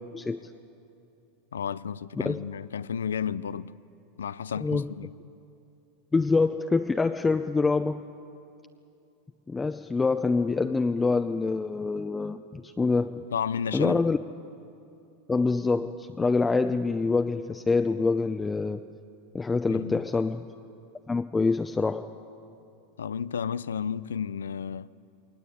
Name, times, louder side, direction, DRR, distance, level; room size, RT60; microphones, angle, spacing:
voice 1, 1.5-3.7 4.2-5.1 13.3-14.0 19.7-20.0 23.0-24.9, left 7 dB, 90° left, 0.5 m, -32 dB
voice 2, 6.1-8.0 9.5-13.3 13.7-14.2 15.3-18.9 19.3-20.4 21.1-22.1, left 4 dB, 15° left, 0.7 m, -25 dB
21.0 x 18.5 x 8.7 m
hypercardioid pair, 95°, 0 cm